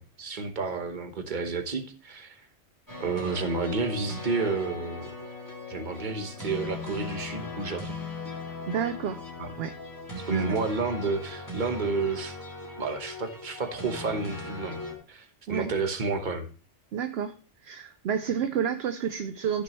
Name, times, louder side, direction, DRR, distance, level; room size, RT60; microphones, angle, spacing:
voice 1, 0.0-2.4 3.0-5.1 5.7-7.9 9.4-9.5 10.3-12.4 12.8-14.8 15.1-16.5, right 4 dB, 40° right, 7 dB, 1.2 m, -31 dB
sound 1, 2.9-14.9, left 2 dB, 15° left, 2.7 m, -39 dB
voice 2, 8.7-9.2 9.6-9.7 10.3-10.6 15.5-15.7 16.9-17.3 17.6-19.6, right 7 dB, 65° right, 9 dB, 0.8 m, -29 dB
13.5 x 6.1 x 3.1 m, 0.38 s
omnidirectional pair, 1.3 m